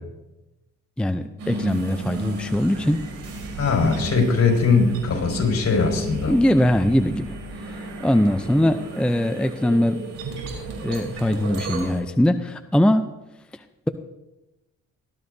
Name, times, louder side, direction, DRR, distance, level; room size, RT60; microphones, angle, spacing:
voice 1, 1.0-3.0 4.7-4.8 6.3-7.3 7.6-10.0 10.8-13.0, left 1 dB, 5° left, 8 dB, 0.5 m, -21 dB
sound 1, 1.4-12.0, right 2 dB, 85° right, 4.0 m, -33 dB
voice 2, 3.6-6.3, left 4 dB, 50° left, 0 dB, 5.3 m, -20 dB
19.5 x 12.5 x 2.7 m, 1.0 s
cardioid pair, 90°, 30 cm